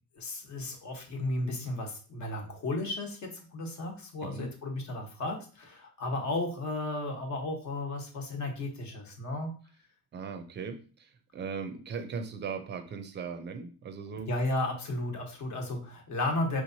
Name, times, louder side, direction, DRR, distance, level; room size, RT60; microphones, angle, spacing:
voice 1, 0.2-9.5 14.3-16.6, left 2 dB, 50° left, 2 dB, 1.2 m, -34 dB
voice 2, 4.2-4.5 10.1-14.3, right 5 dB, 30° right, 8 dB, 0.5 m, -38 dB
4.7 x 3.1 x 2.7 m, 0.39 s
cardioid pair, 150°, 36 cm